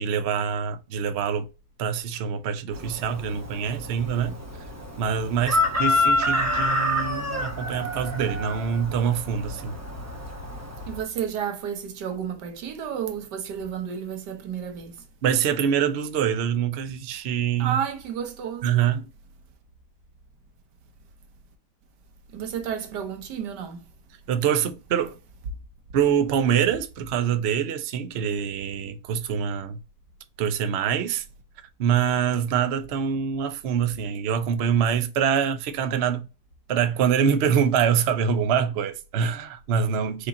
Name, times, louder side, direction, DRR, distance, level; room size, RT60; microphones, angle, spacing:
voice 1, 0.0-1.4 1.8-4.4 5.0-9.8 15.2-17.8 18.6-19.1 24.3-25.2 25.9-29.8 30.4-31.2 31.8-36.3 36.7-40.3, right 8 dB, 60° right, 0.7 m, -25 dB
Chicken rooster, 2.7-11.0, left 1 dB, 15° right, 0.8 m, -28 dB
voice 2, 10.9-15.0 17.6-18.7 22.3-23.8, right 8 dB, 90° right, 1.5 m, -31 dB
5.0 x 2.8 x 3.8 m
omnidirectional pair, 1.8 m